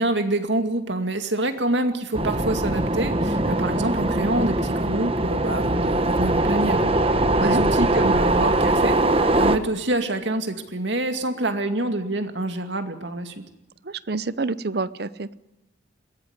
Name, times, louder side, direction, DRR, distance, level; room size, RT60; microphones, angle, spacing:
voice 1, 0.0-6.9 7.4-13.4, right 1 dB, 70° right, 7 dB, 2.4 m, -26 dB
sound 1, 2.1-9.6, right 2 dB, 30° right, 1.1 m, -21 dB
voice 2, 7.3-7.6 13.8-15.3, right 3 dB, 55° right, 16 dB, 0.7 m, -28 dB
21.5 x 16.5 x 9.7 m, 0.98 s
head